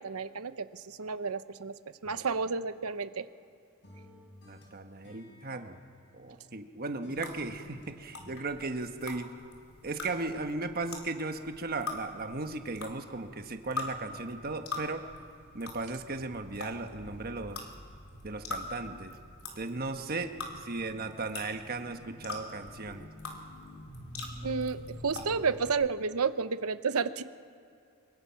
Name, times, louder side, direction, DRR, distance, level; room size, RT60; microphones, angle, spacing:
voice 1, 0.0-1.7 2.0-3.2 24.4-24.8 25.0-27.2, right 5 dB, 90° right, 12 dB, 0.8 m, -31 dB
sound 1, 2.0-3.5 3.8-6.7 7.0-8.4, equal, 55° left, 4.9 m, -55 dB
voice 2, 4.5-5.8 6.1-9.3 9.8-15.0 15.5-17.6 18.2-19.2 19.6-23.1, right 3 dB, 45° right, 6 dB, 1.3 m, -36 dB
sound 2, 7.2-25.7, left 3 dB, 80° left, 3.3 m, -44 dB
24.5 x 22.5 x 5.8 m, 2.5 s
head